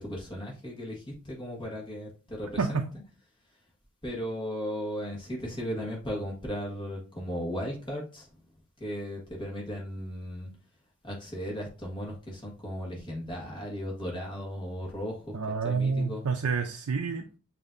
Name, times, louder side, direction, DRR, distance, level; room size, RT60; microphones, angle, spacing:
voice 1, 0.0-2.8 4.0-8.3 8.8-10.5 11.0-15.4 15.6-16.2, equal, 20° left, -2 dB, 1.5 m, -36 dB
voice 2, 15.3-17.4, right 5 dB, 85° right, 3 dB, 0.5 m, -29 dB
6.8 x 2.8 x 2.5 m, 0.35 s
head